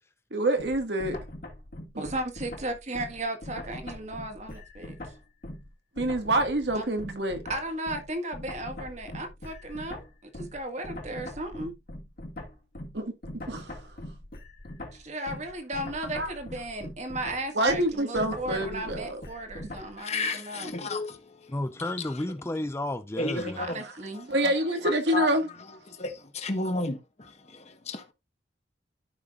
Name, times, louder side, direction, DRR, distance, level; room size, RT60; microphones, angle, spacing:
voice 1, 0.3-1.2 1.9-2.0 6.0-7.4 12.9-13.1 13.5-13.8 16.1-16.3 17.6-19.2 23.4-23.5 24.3-25.5, right 1 dB, 70° right, 1.7 m, -27 dB
sound 1, 0.6-5.7 6.0-20.0, left 1 dB, 55° left, 2.1 m, -42 dB
voice 2, 2.0-5.0 6.7-6.9 7.5-10.0 10.3-11.7 15.1-20.7 23.6-24.3, right 1 dB, 40° right, 1.9 m, -35 dB
voice 3, 20.0-21.5 23.2-23.8 24.4-24.5 24.8-25.3 25.9-27.0 27.5-28.1, left 2 dB, 40° left, 1.2 m, -32 dB
voice 4, 21.5-23.6, left 1 dB, 15° left, 0.4 m, -32 dB
13.0 x 5.8 x 2.4 m
head